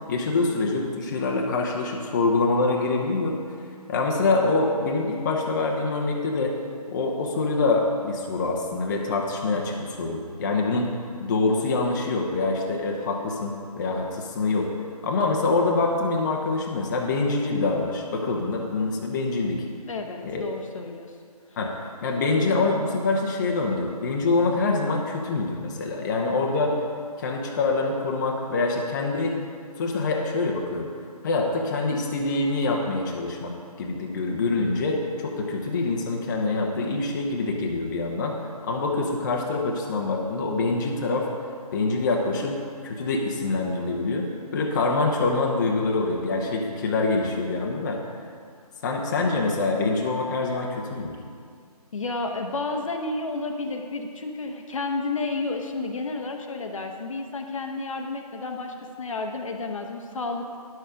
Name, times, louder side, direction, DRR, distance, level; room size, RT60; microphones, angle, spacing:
voice 1, 0.1-3.4 3.9-6.5 6.9-10.9 11.2-14.7 15.0-19.6 20.2-20.4 21.6-21.7 22.0-26.7 27.2-29.4 29.8-30.9 31.2-33.5 33.8-38.3 38.6-41.3 41.7-44.3 44.5-48.0 48.8-51.2, left 3 dB, 30° left, 0 dB, 0.9 m, -25 dB
voice 2, 19.9-21.1 51.9-60.6, left 3 dB, 55° left, 3 dB, 1.0 m, -31 dB
10.5 x 7.1 x 5.1 m, 2.2 s
figure-of-eight pair, 155°, 20 cm